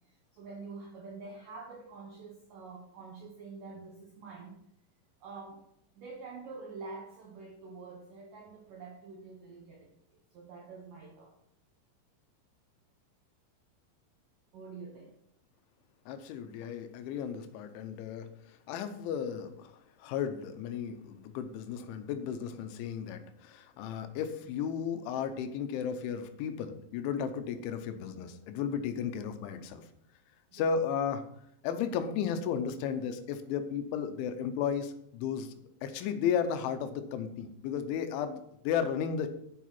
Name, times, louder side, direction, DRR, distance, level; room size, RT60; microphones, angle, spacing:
voice 1, 0.1-4.6 5.2-5.7 6.0-11.4 14.5-15.2 30.5-30.7, right 4 dB, 75° right, 0 dB, 1.9 m, -47 dB
voice 2, 16.1-19.7 20.0-29.8 30.5-31.3 31.6-35.5 35.8-39.3, left 7 dB, 80° left, 9 dB, 3.2 m, -34 dB
7.6 x 7.4 x 5.8 m, 0.72 s
omnidirectional pair, 5.5 m